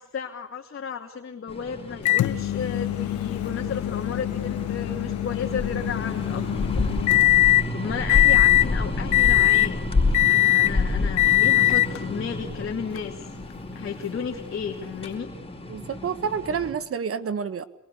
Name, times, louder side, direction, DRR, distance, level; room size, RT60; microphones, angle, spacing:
voice 1, 0.0-6.5 6.7-6.9 7.4-9.8 10.3-13.2 13.7-15.3, left 6 dB, 45° left, 1 dB, 2.8 m, -33 dB
sound 1, 1.5-16.7, left 2 dB, 20° left, 5.3 m, -30 dB
Microwave oven, 2.1-7.7 8.1-8.7 9.1-9.7 10.1-10.8 11.2-12.0 13.0-13.1 15.1-15.2, left 16 dB, 75° left, 1.2 m, -21 dB
voice 2, 15.7-17.6, right 6 dB, 50° right, 14 dB, 1.6 m, -29 dB
27.0 x 22.5 x 8.5 m, 0.76 s
cardioid pair, 90°, 30 cm